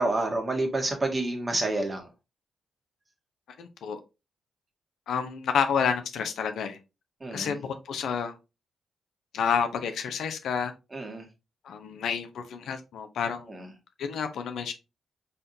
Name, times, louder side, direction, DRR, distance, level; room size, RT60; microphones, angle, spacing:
voice 1, 0.0-2.1 7.2-7.6 10.9-11.2 13.5-13.6, right 2 dB, 35° right, 3 dB, 1.5 m, -28 dB
voice 2, 3.6-4.0 5.1-6.8 7.3-8.3 9.3-10.7 11.6-13.5 14.0-14.7, left 7 dB, 70° left, 7 dB, 0.6 m, -29 dB
4.1 x 3.8 x 2.7 m, 0.27 s
hypercardioid pair, 40°, 0 cm